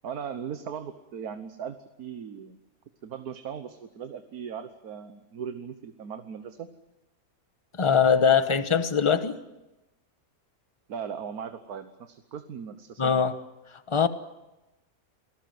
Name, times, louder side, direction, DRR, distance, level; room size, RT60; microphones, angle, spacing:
voice 1, 0.0-2.6 3.0-6.7 10.9-13.3, right 7 dB, 85° right, 1.6 m, -38 dB
voice 2, 7.8-9.4 13.0-13.3 13.9-14.1, left 6 dB, 25° left, 1.1 m, -22 dB
28.5 x 18.5 x 7.8 m
omnidirectional pair, 1.5 m